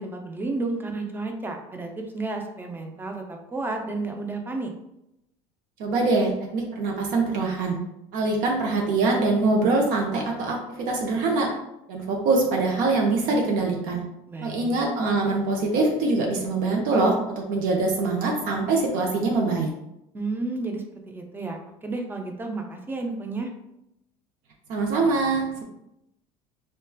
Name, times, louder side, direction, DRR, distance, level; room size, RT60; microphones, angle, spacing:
voice 1, 0.0-4.7 14.3-14.9 20.1-23.5, right 3 dB, 15° right, 3 dB, 0.4 m, -32 dB
voice 2, 5.8-7.8 8.1-11.5 11.9-14.0 14.4-19.7 24.7-25.6, right 3 dB, 65° right, 0 dB, 0.6 m, -23 dB
3.0 x 2.2 x 2.2 m, 0.84 s
supercardioid pair, 95°, 15 cm